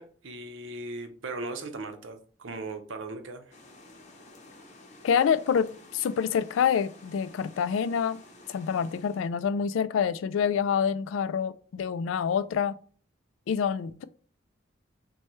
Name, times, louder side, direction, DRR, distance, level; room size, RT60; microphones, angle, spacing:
voice 1, 0.0-3.5, right 2 dB, 90° right, 0.7 m, -38 dB
sound 1, 3.5-9.3, left 2 dB, 40° left, 0.7 m, -52 dB
voice 2, 5.0-8.2 8.5-12.8 13.5-14.0, left 7 dB, 90° left, 0.3 m, -27 dB
6.1 x 2.2 x 3.0 m
head